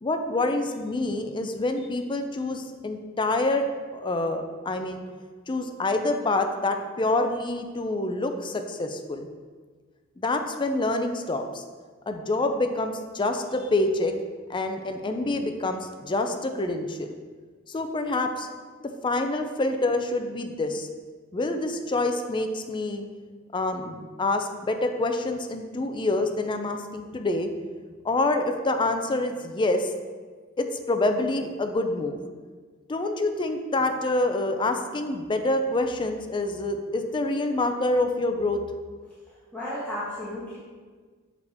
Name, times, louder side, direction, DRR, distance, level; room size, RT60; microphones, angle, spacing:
voice 1, 0.0-5.0 5.5-9.3 10.2-11.6 12.1-14.1 14.5-17.1 17.7-18.5 18.8-20.9 21.3-23.0 23.5-27.5 28.0-29.9 30.6-32.2 32.9-38.6, left 2 dB, 25° left, 6 dB, 0.4 m, -27 dB
voice 2, 39.5-40.6, left 1 dB, 10° left, -10 dB, 1.1 m, -33 dB
6.5 x 4.9 x 3.4 m, 1.5 s
head